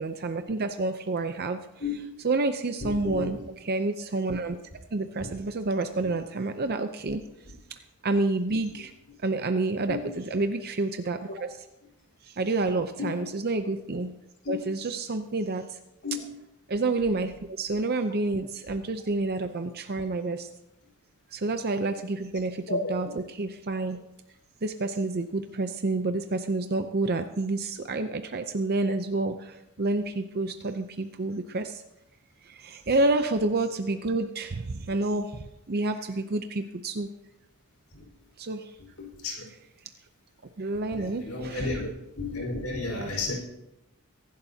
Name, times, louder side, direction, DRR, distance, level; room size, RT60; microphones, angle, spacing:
voice 1, 0.0-1.6 2.2-3.4 3.6-4.6 4.9-7.2 8.0-8.9 9.2-11.5 12.2-14.1 14.5-15.8 16.7-20.5 21.3-23.1 23.4-24.0 24.6-31.8 32.4-37.1 38.4-38.8 40.6-41.7 42.9-43.1, right 2 dB, 45° right, 8 dB, 0.6 m, -29 dB
voice 2, 2.8-3.4 5.2-5.3 9.9-10.1 13.0-13.2 14.4-14.6 16.0-16.2 22.7-22.9 37.9-38.0 39.0-39.4 40.9-41.9 42.1-43.3, left 3 dB, 70° left, 0 dB, 4.7 m, -32 dB
23.0 x 11.5 x 2.8 m, 0.91 s
head